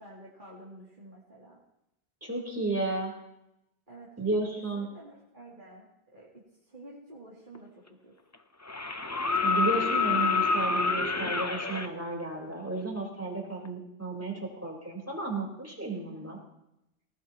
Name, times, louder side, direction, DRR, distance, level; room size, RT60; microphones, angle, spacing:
voice 1, 0.0-1.6 3.9-4.1 4.7-6.3 6.6-8.1 15.9-16.3, right 1 dB, 50° right, -6 dB, 3.1 m, -50 dB
voice 2, 2.2-3.1 4.2-4.9 9.4-16.4, right 3 dB, 15° right, -2 dB, 4.2 m, -33 dB
sound 1, 7.5-7.6 8.7-11.9 13.6-13.7, left 4 dB, 20° left, 0.6 m, -27 dB
19.0 x 18.5 x 3.0 m, 0.86 s
omnidirectional pair, 1.1 m